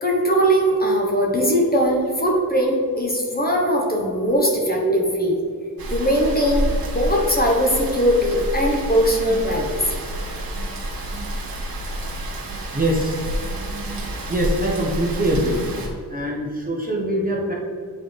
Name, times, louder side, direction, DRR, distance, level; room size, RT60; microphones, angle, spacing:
voice 1, 0.0-5.4 5.9-10.0, equal, 25° left, -1 dB, 1.1 m, -20 dB
Rain, 5.8-15.9, right 1 dB, 70° right, 1.6 m, -28 dB
voice 2, 12.7-13.2 14.3-15.6 16.1-17.5, right 1 dB, 25° right, -3 dB, 1.1 m, -23 dB
9.2 x 4.0 x 3.4 m, 2.2 s
wide cardioid pair, 115°, 36 cm